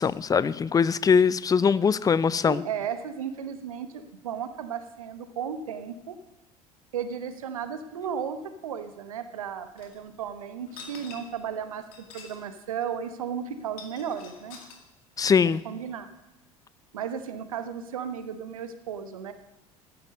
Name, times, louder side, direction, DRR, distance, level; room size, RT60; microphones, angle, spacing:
voice 1, 0.0-2.6 15.2-15.6, left 6 dB, 20° left, 18 dB, 0.5 m, -22 dB
voice 2, 2.5-6.2 6.9-11.9 12.1-14.6 15.4-16.1 16.9-19.3, right 8 dB, 75° right, 10 dB, 1.1 m, -34 dB
sound 1, 9.8-10.0 10.6-11.4 11.8-12.4 12.7-12.8 13.6-14.8, left 5 dB, 55° left, 2.2 m, -46 dB
14.0 x 10.5 x 5.4 m, 0.98 s
figure-of-eight pair, 65°, 18 cm